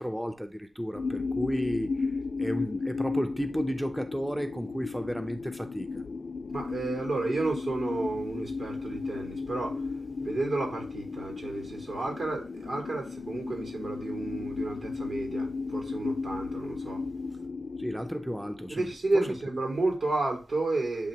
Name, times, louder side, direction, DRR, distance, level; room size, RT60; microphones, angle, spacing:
voice 1, 0.0-2.1 2.4-6.0 17.8-19.3, equal, 5° right, 0.5 m, -33 dB
sound 1, 0.9-19.0, left 4 dB, 65° left, 0.5 m, -35 dB
voice 2, 6.5-9.8 10.2-17.0 18.7-21.1, right 2 dB, 75° right, 3.8 m, -31 dB
8.7 x 3.0 x 3.9 m
wide cardioid pair, 80°, 0 cm